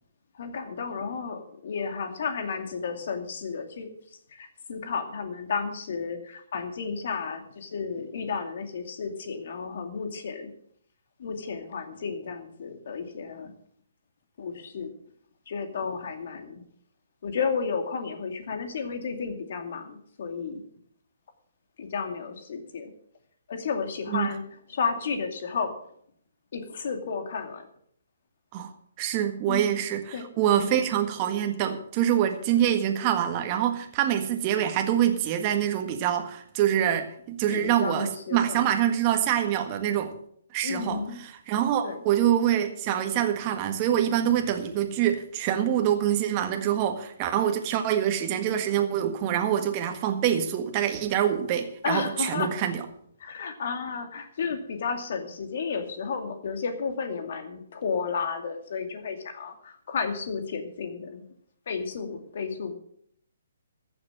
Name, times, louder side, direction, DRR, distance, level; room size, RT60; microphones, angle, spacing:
voice 1, 0.3-3.9 4.3-10.5 11.2-13.5 14.4-14.9 15.5-16.6 17.2-20.6 21.8-22.9 23.5-24.4 24.7-25.7 26.5-27.7 29.5-29.8 30.1-30.3 30.5-31.1 37.5-38.6 40.6-41.2 41.8-42.0 51.8-52.5 53.2-61.2 61.7-62.7, left 5 dB, 55° left, 6 dB, 2.3 m, -32 dB
voice 2, 29.0-40.1 40.5-41.0 41.5-52.8, right 10 dB, 30° right, 5 dB, 1.6 m, -25 dB
14.5 x 7.2 x 7.6 m, 0.66 s
figure-of-eight pair, 140°, 0 cm